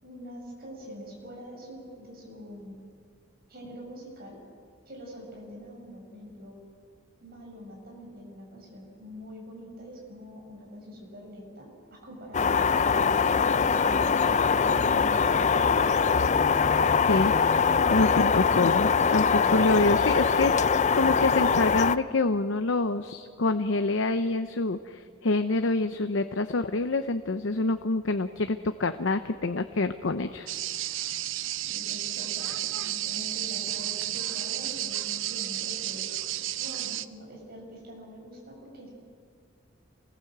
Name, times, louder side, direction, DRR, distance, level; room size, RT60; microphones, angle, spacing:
voice 1, 0.0-2.8 3.5-4.4 4.9-6.6 7.2-14.4 14.8-15.5 31.5-36.1 36.6-38.9, equal, 55° right, -1 dB, 7.5 m, -44 dB
sound 1, 12.3-22.0, left 5 dB, 40° left, 0.5 m, -23 dB
voice 2, 17.9-30.5, left 2 dB, 75° left, 9 dB, 0.8 m, -26 dB
sound 2, 30.5-37.1, right 13 dB, 85° right, 0.7 m, -32 dB
27.0 x 20.0 x 8.1 m, 2.2 s
head